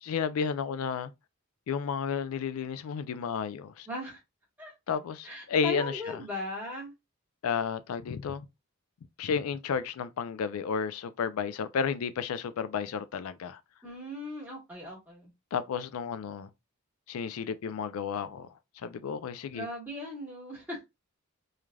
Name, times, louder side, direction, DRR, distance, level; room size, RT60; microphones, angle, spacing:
voice 1, 0.0-1.1 1.7-3.9 4.9-6.2 7.4-8.5 9.2-13.6 15.5-16.5 17.1-19.7, left 6 dB, 80° left, 0.4 m, -32 dB
voice 2, 3.9-4.2 4.6-4.7 5.2-6.9 13.8-15.3 19.5-20.9, left 1 dB, 10° right, 1.4 m, -38 dB
3.2 x 2.4 x 2.2 m
head